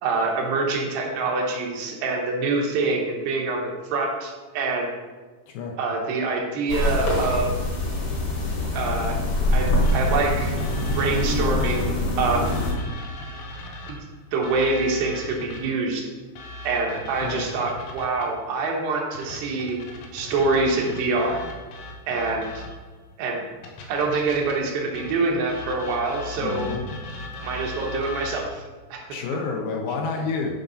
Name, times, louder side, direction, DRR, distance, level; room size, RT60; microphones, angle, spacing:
voice 1, 0.0-4.9 5.8-7.5 8.7-9.2 9.5-10.6 10.9-12.6 13.9-14.0 14.3-16.0 16.6-19.8 20.1-21.4 22.1-22.6 23.2-23.4 23.9-26.7 27.4-28.6 28.9-29.1, right 3 dB, 80° right, 0 dB, 3.3 m, -25 dB
sound 1, 6.7-12.7, left 1 dB, 45° left, 1.6 m, -24 dB
sound 2, 9.8-12.1 12.5-15.8 16.4-18.4 19.2-22.9 23.6-28.6, left 1 dB, 90° left, 3.3 m, -39 dB
voice 2, 26.4-26.8 29.1-30.6, left 4 dB, 75° left, 1 dB, 2.5 m, -29 dB
10.5 x 5.3 x 4.1 m, 1.4 s
omnidirectional pair, 4.8 m